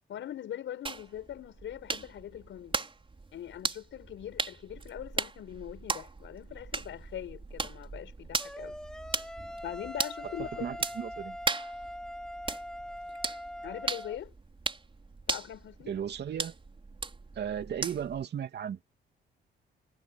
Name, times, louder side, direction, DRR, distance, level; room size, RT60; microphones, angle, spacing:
voice 1, 0.1-2.9 3.3-8.8 9.6-10.8 13.6-14.3 15.3-15.9, left 11 dB, 70° left, 6.5 m, -42 dB
sound 1, 0.9-18.2, right 3 dB, 25° right, 5.4 m, -38 dB
sound 2, 8.4-14.2, left 1 dB, 5° left, 2.2 m, -42 dB
voice 2, 10.6-11.4 15.9-16.5 17.3-18.8, right 8 dB, 60° right, 2.8 m, -35 dB
cardioid pair, 90°, 20 cm